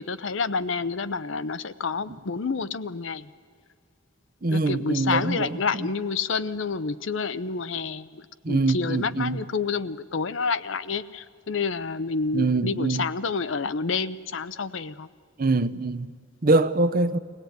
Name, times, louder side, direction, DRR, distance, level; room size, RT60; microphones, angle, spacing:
voice 1, 0.0-3.3 4.5-15.1, left 4 dB, 70° left, 0.7 m, -29 dB
voice 2, 4.4-5.5 5.8-5.9 8.4-9.4 12.3-13.0 15.4-16.1 16.4-17.2, right 3 dB, 45° right, 0.7 m, -23 dB
24.0 x 17.5 x 9.3 m
head